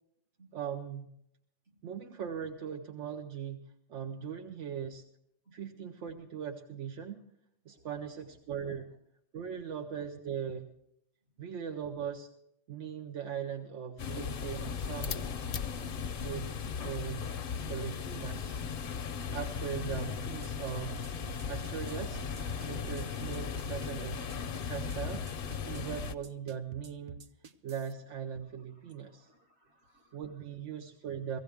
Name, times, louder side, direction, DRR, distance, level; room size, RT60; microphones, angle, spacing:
voice 1, 0.5-1.1 1.8-3.6 3.9-5.0 5.5-7.2 7.7-8.9 9.3-10.7 11.4-12.3 12.7-15.3 16.2-17.3 17.7-18.6 19.3-21.1 21.5-22.2 22.6-24.3 24.6-25.2 25.6-27.2 27.6-29.3 30.1-31.4, right 8 dB, 85° right, 5 dB, 1.1 m, -39 dB
voice 2, 7.7-8.4 11.4-11.5 14.4-16.0 28.8-30.4, equal, 65° right, 1 dB, 2.0 m, -64 dB
sound 1, 14.0-26.1, left 6 dB, 55° left, 0.7 m, -37 dB
sound 2, 20.2-27.9, right 6 dB, 45° right, 0.5 m, -48 dB
16.5 x 16.0 x 3.4 m, 0.75 s
omnidirectional pair, 1.2 m